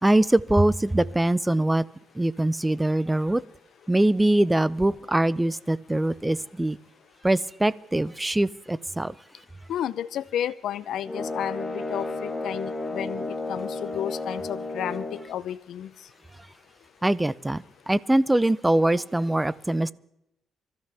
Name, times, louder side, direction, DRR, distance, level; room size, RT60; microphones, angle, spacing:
voice 1, 0.0-1.8 2.2-3.4 3.9-6.8 7.2-9.1 17.0-19.9, right 1 dB, 10° right, 0.5 m, -23 dB
voice 2, 9.7-15.9, left 10 dB, 75° left, 0.6 m, -32 dB
sound 1, 11.1-15.3, left 2 dB, 25° left, 1.5 m, -32 dB
26.0 x 13.5 x 3.4 m
cardioid pair, 110°, 0 cm